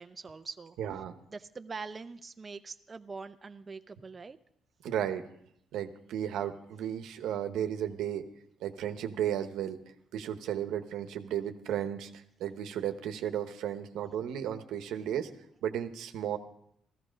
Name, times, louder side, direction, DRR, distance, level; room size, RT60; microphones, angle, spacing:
voice 1, 0.0-0.8 1.3-4.4, right 4 dB, 30° right, 8 dB, 0.6 m, -43 dB
voice 2, 0.8-1.1 4.8-5.2 5.7-8.3 8.6-9.8 10.1-15.3 15.6-16.4, right 10 dB, 85° right, 8 dB, 1.0 m, -34 dB
14.5 x 14.0 x 5.1 m, 0.73 s
cardioid pair, 90°, 0 cm